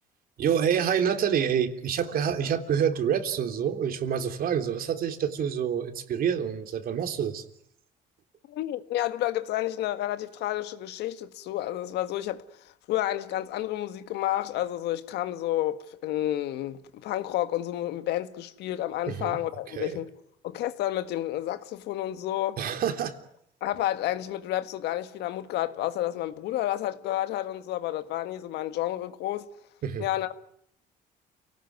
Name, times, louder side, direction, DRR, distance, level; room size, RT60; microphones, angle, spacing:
voice 1, 0.4-7.4 19.1-19.4 19.7-20.0 22.6-23.2 29.8-30.1, right 8 dB, 60° right, 3.2 m, -27 dB
voice 2, 8.5-12.4 12.9-20.1 20.4-22.6 23.6-29.5 30.0-30.3, left 13 dB, 80° left, 1.7 m, -30 dB
29.0 x 18.5 x 9.5 m
cardioid pair, 110°, 17 cm